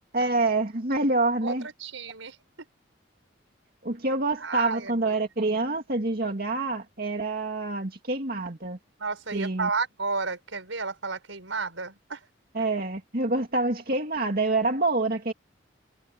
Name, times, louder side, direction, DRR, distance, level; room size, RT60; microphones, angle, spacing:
voice 1, 0.1-1.6 3.8-8.8 9.3-9.7 12.5-15.3, right 2 dB, 50° right, 2.4 m, -26 dB
voice 2, 1.4-2.4 4.4-5.2 9.0-12.3, right 4 dB, 85° right, 5.4 m, -32 dB
head